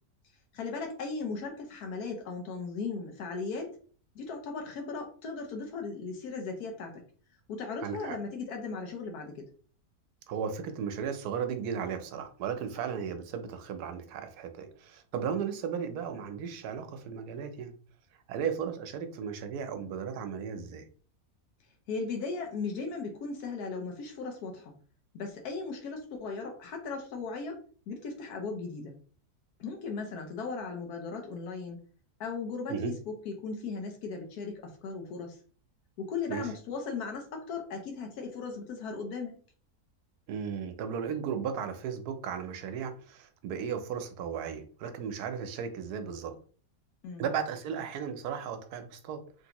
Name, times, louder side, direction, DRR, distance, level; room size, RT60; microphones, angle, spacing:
voice 1, 0.5-3.8 4.1-7.0 7.5-9.5 21.9-24.7 25.1-29.0 29.6-31.8 32.2-35.4 36.0-39.4 47.0-47.3, left 4 dB, 80° left, 3 dB, 1.2 m, -37 dB
voice 2, 7.8-8.2 10.3-17.7 18.3-20.8 32.7-32.9 36.3-36.5 40.3-46.3 47.2-49.2, right 7 dB, 85° right, 8 dB, 1.1 m, -35 dB
3.2 x 2.6 x 2.8 m, 0.43 s
omnidirectional pair, 1.6 m